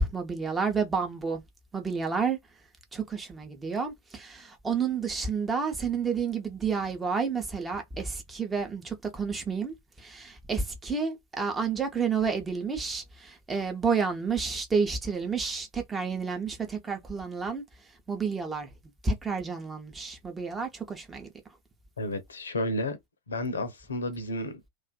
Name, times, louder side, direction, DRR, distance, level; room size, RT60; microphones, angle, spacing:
voice 1, 0.0-1.4 1.7-2.4 2.9-17.6 18.1-21.3, right 5 dB, 15° right, 0.7 m, -30 dB
voice 2, 22.0-23.0 23.3-24.7, left 1 dB, 70° left, 0.6 m, -32 dB
2.4 x 2.4 x 2.2 m
figure-of-eight pair, 90°, 0 cm